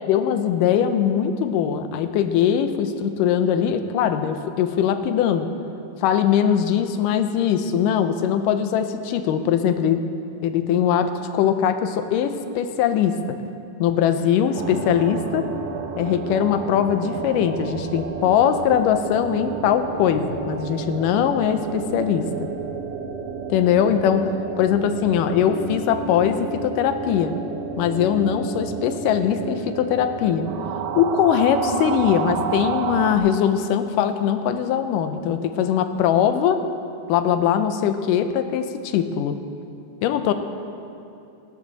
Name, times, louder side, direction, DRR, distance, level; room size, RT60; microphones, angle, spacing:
voice 1, 0.1-5.5 6.0-10.0 10.4-13.2 13.8-15.4 16.0-22.5 23.5-24.3 24.6-27.3 27.8-30.5 31.0-36.6 37.1-39.4 40.0-40.3, left 9 dB, 80° left, 9 dB, 2.2 m, -21 dB
sound 1, 14.5-33.2, right 5 dB, 75° right, 1.5 m, -31 dB
19.0 x 12.5 x 4.1 m, 2.7 s
omnidirectional pair, 4.0 m